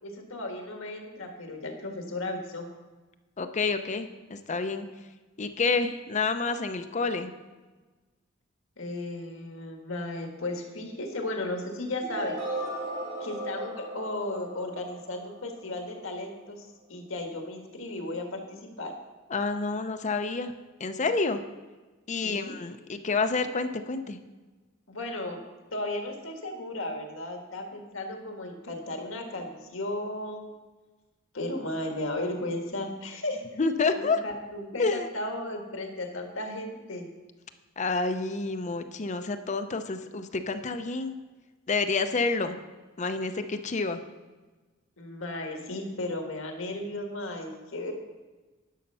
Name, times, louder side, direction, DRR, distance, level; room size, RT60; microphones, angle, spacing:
voice 1, 0.0-2.7 8.8-12.3 13.2-18.9 22.2-22.5 24.9-25.4 25.7-30.5 31.3-33.6 33.9-37.1 45.0-47.9, left 1 dB, 80° left, 3 dB, 1.7 m, -35 dB
voice 2, 3.4-4.9 5.4-7.3 19.3-20.5 20.8-21.4 22.1-24.2 33.6-34.2 34.8-35.1 37.8-41.1 41.7-42.6 43.0-44.0, left 4 dB, 35° left, 8 dB, 0.6 m, -28 dB
sound 1, 12.0-15.9, right 1 dB, 80° right, 3.6 m, -36 dB
11.0 x 6.5 x 5.5 m, 1.3 s
head